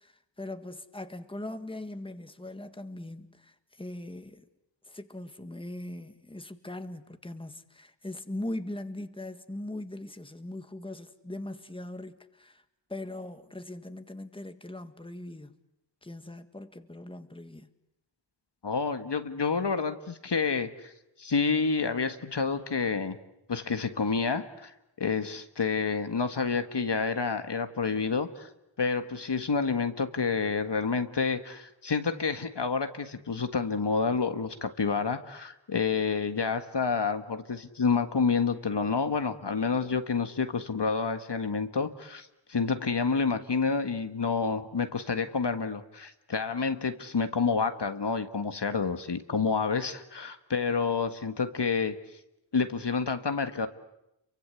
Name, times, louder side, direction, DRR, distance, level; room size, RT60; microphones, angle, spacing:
voice 1, 0.0-4.5 4.8-12.6 12.9-15.6 16.0-17.7, left 1 dB, 10° left, 1.8 m, -40 dB
voice 2, 18.6-20.9 21.2-23.2 23.5-28.5 28.8-51.9 52.5-53.7, left 5 dB, 60° left, 1.7 m, -29 dB
29.0 x 24.0 x 8.2 m
wide cardioid pair, 55°, 46 cm